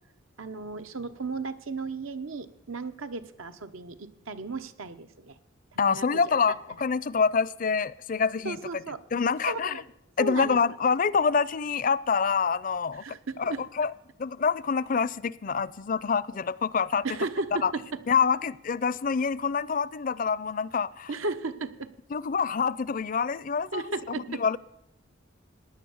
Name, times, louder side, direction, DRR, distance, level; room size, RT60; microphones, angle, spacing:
voice 1, 0.4-5.4 5.9-6.1 8.4-9.0 9.5-9.8 10.2-10.6 13.0-13.6 17.0-17.8 21.1-21.9 23.7-24.4, right 3 dB, 90° right, 9 dB, 1.0 m, -34 dB
voice 2, 5.8-8.8 9.1-9.7 10.2-13.0 13.4-13.9 14.2-17.1 17.6-17.7 18.1-21.1 22.1-23.9 24.3-24.6, left 5 dB, 45° left, 21 dB, 0.4 m, -26 dB
16.0 x 10.5 x 7.1 m, 0.81 s
head